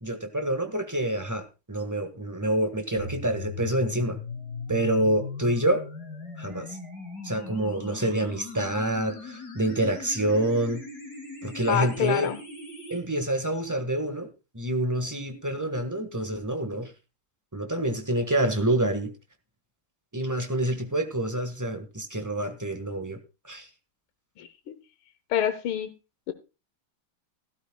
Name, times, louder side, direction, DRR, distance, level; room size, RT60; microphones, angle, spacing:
voice 1, 0.0-4.2 4.7-5.8 6.4-6.8 7.2-10.8 11.4-12.3 12.9-14.3 14.5-16.9 17.5-19.1 20.1-23.2 23.5-23.7, right 1 dB, 10° right, 6 dB, 1.3 m, -27 dB
sound 1, 3.0-13.0, left 4 dB, 50° left, 3.4 m, -40 dB
voice 2, 11.7-12.4 24.4-24.8 25.3-25.9 26.3-26.4, left 10 dB, 80° left, 10 dB, 1.8 m, -27 dB
16.0 x 12.5 x 2.3 m, 0.28 s
omnidirectional pair, 2.3 m